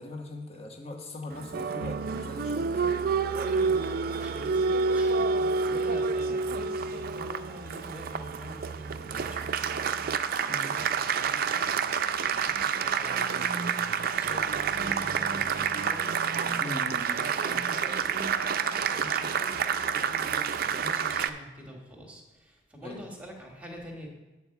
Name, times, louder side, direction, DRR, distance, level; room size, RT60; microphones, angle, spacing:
voice 1, 0.0-3.0 10.5-10.7 16.6-17.3 22.8-23.0, left 2 dB, 30° left, 1 dB, 1.2 m, -40 dB
Applause, 1.3-21.3, right 5 dB, 50° right, 0.4 m, -28 dB
voice 2, 3.3-10.0 10.5-16.6 17.4-24.1, equal, 5° right, 0 dB, 1.6 m, -46 dB
9.0 x 4.6 x 7.0 m, 1.1 s
head